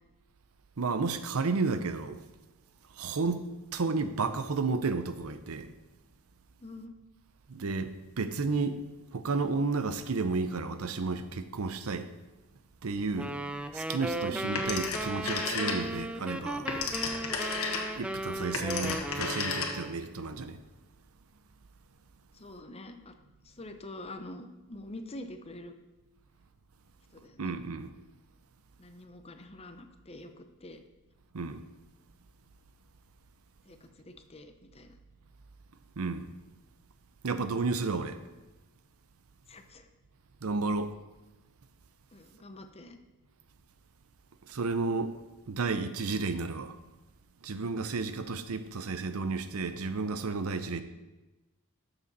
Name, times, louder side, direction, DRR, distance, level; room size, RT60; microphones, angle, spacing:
voice 1, 0.8-2.2 2.9-5.7 7.5-8.8 9.1-12.1 12.8-13.4 13.7-16.7 17.9-20.6 27.4-27.9 31.3-31.6 36.0-36.3 37.2-38.2 40.4-41.0 44.5-45.2 45.5-46.8 47.4-50.8, right 4 dB, 80° right, 0.7 m, -32 dB
voice 2, 6.6-7.0 14.3-14.6 22.3-23.2 23.4-25.7 27.1-27.5 28.8-30.8 33.7-35.0 39.5-39.9 42.1-43.0, left 1 dB, 30° left, 0.7 m, -46 dB
sound 1, 13.2-20.0, right 1 dB, 5° right, 0.3 m, -36 dB
Telephone, 14.6-16.1 16.5-20.0, left 5 dB, 75° left, 1.4 m, -33 dB
12.5 x 6.9 x 4.1 m
head